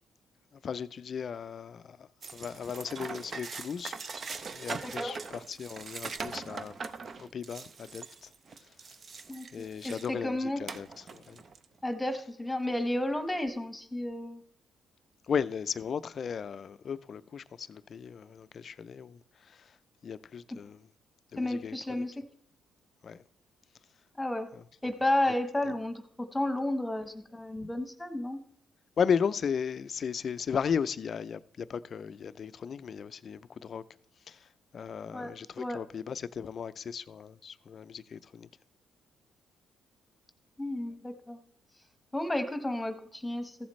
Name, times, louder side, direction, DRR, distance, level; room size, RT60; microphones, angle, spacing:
voice 1, 0.5-4.0 4.5-6.8 7.2-8.3 9.5-11.4 15.3-19.8 20.0-20.9 21.3-22.0 23.0-23.2 24.5-24.6 29.0-33.8 34.3-38.5, left 7 dB, 50° left, 0.4 m, -35 dB
sound 1, 2.2-10.2 10.7-11.6, right 4 dB, 45° right, 0.6 m, -41 dB
voice 2, 4.8-5.1 9.3-9.4 9.8-10.6 11.8-14.4 21.4-22.1 24.2-24.5 24.8-28.4 35.1-35.8 40.6-41.4 42.1-43.6, left 1 dB, 10° left, 1.1 m, -32 dB
14.5 x 7.2 x 3.1 m
cardioid pair, 90°, 0 cm